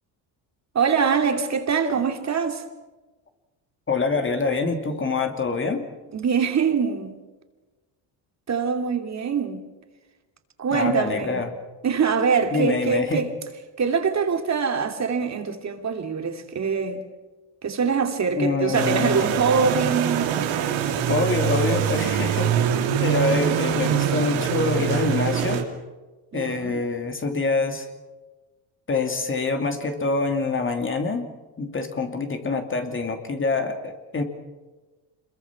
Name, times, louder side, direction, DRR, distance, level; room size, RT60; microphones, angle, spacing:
voice 1, 0.7-2.6 6.1-7.2 8.5-9.6 10.6-11.4 11.8-13.3 13.8-17.0 17.6-20.3 26.3-26.8, right 6 dB, 35° right, 2.9 m, -24 dB
voice 2, 3.9-5.8 10.7-11.5 12.5-13.2 18.4-19.3 21.1-22.5 22.9-25.6 26.3-27.9 28.9-31.3 31.6-34.2, left 3 dB, 25° left, 2.7 m, -25 dB
sound 1, 18.7-25.6, right 9 dB, 75° right, 3.1 m, -24 dB
26.5 x 22.5 x 6.0 m
cardioid pair, 105°, 46 cm